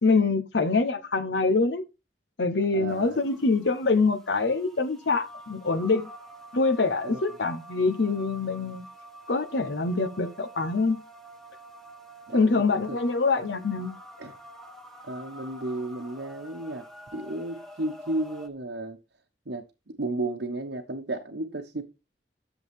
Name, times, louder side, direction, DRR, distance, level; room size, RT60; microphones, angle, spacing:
voice 1, 0.0-1.8 2.4-6.1 6.5-8.9 9.3-11.0 12.3-13.9, left 3 dB, 70° left, 0.9 m, -25 dB
voice 2, 2.7-3.2 7.0-7.4 12.3-13.0 14.2-14.3 15.0-16.8 17.1-19.0 19.5-21.8, right 2 dB, 80° right, 1.2 m, -33 dB
sound 1, 2.9-18.5, right 1 dB, ahead, 1.4 m, -47 dB
11.5 x 7.1 x 3.6 m
head